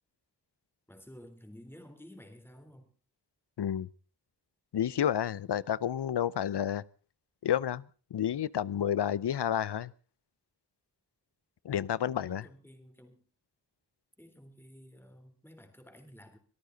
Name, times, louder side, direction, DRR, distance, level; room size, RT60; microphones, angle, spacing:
voice 1, 0.9-2.9 12.2-13.2 14.2-16.4, equal, 5° left, 7 dB, 3.6 m, -52 dB
voice 2, 3.6-3.9 4.7-6.8 7.4-7.8 8.1-9.9 11.6-12.4, left 10 dB, 80° left, 22 dB, 0.7 m, -30 dB
24.0 x 13.5 x 3.9 m, 0.37 s
wide cardioid pair, 55°, 40 cm